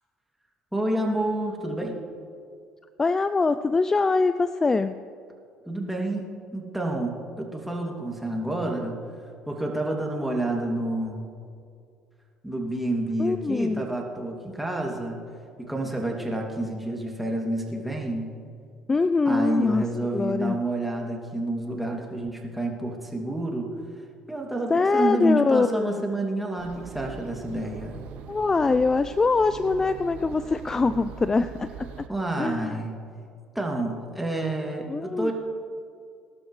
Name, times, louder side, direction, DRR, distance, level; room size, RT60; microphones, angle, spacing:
voice 1, 0.7-2.0 5.6-9.0 9.5-11.3 12.4-15.2 15.6-18.3 19.3-23.7 24.3-28.0 32.1-32.9 33.5-35.3, right 1 dB, 5° right, 0 dB, 2.6 m, -29 dB
voice 2, 3.0-5.0 13.2-13.8 18.9-19.9 20.1-20.6 24.7-26.0 28.3-32.1 32.4-32.8 34.9-35.3, left 3 dB, 25° left, 12 dB, 0.4 m, -23 dB
sound 1, 26.6-32.1, right 7 dB, 65° right, 0.7 m, -42 dB
20.5 x 12.0 x 3.2 m, 2.3 s
hypercardioid pair, 65°, 2 cm